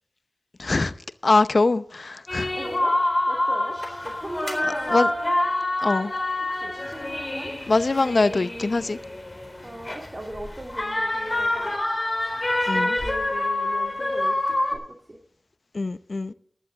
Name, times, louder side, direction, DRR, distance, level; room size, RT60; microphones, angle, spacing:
voice 1, 0.6-2.6 4.6-5.1 5.8-6.1 7.7-9.0 12.7-13.0 15.7-16.3, left 3 dB, 60° left, 0.7 m, -23 dB
sound 1, 2.3-14.8, left 1 dB, 35° left, 3.7 m, -26 dB
voice 2, 2.5-2.9 3.3-3.7 4.0-5.1 6.6-7.5 9.6-11.8 12.7-14.4 14.7-14.8 15.1-15.2, right 1 dB, 30° right, 2.4 m, -38 dB
15.5 x 11.5 x 4.0 m
cardioid pair, 45°, 0 cm